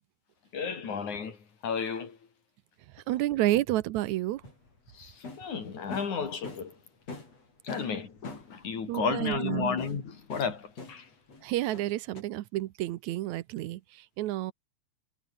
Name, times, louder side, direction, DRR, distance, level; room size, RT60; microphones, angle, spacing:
voice 1, 0.5-2.2 4.9-6.8 7.6-11.1, left 6 dB, 80° left, 5.1 m, -33 dB
voice 2, 3.0-4.4 8.9-9.7 11.4-14.5, right 15 dB, 75° right, 2.1 m, -30 dB
sound 1, 4.1-6.8 7.1-8.8 9.6-11.4 11.7-12.2, left 3 dB, 60° left, 8.0 m, -44 dB
omnidirectional pair, 3.4 m